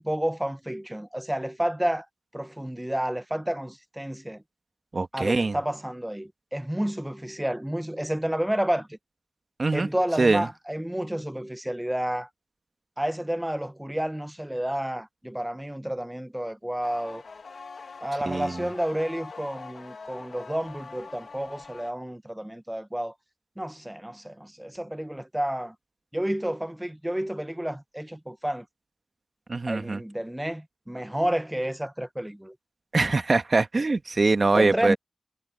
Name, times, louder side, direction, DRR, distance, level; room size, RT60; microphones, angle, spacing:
voice 1, 0.0-2.1 2.3-4.4 5.1-9.0 9.7-12.3 13.0-17.2 18.0-23.1 23.6-25.7 26.1-28.6 29.7-32.5 34.5-35.0, right 1 dB, 10° right, 1.1 m, -30 dB
voice 2, 4.9-5.6 9.6-9.9 10.2-10.5 18.2-18.7 29.5-30.0 32.9-35.0, right 3 dB, 55° right, 1.6 m, -23 dB
sound 1, 16.8-21.9, left 4 dB, 75° left, 1.5 m, -43 dB
cardioid pair, 40°, 0 cm